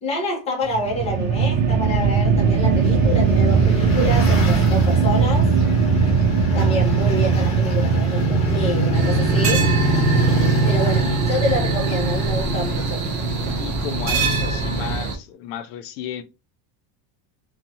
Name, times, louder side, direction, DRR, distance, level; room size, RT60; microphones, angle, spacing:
voice 1, 0.0-5.5 6.5-9.7 10.6-13.0, left 1 dB, 15° left, 0.6 m, -27 dB
sound 1, 0.7-13.0, right 5 dB, 75° right, 0.7 m, -20 dB
sound 2, 0.9-14.9, right 2 dB, 35° left, 1.0 m, -24 dB
sound 3, 8.9-15.1, right 4 dB, 35° right, 0.5 m, -27 dB
voice 2, 13.6-16.2, left 10 dB, 85° left, 0.6 m, -33 dB
2.6 x 2.3 x 2.7 m
cardioid pair, 170°, 49 cm